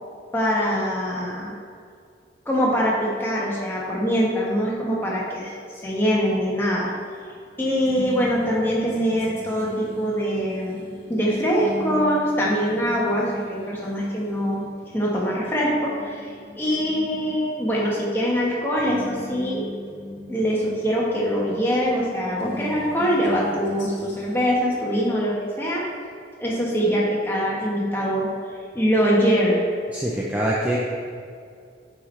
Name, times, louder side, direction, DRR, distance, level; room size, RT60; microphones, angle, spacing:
voice 1, 0.3-1.5 2.5-5.5 5.8-6.9 7.6-10.8 11.1-14.7 14.9-19.6 20.3-25.8 26.4-28.3 28.7-29.6, equal, 10° left, -5 dB, 1.1 m, -23 dB
sound 1, 7.0-24.5, left 1 dB, 70° left, 1.4 m, -39 dB
voice 2, 29.9-30.8, right 1 dB, 10° right, -5 dB, 0.5 m, -24 dB
8.3 x 4.5 x 3.2 m, 2.2 s
head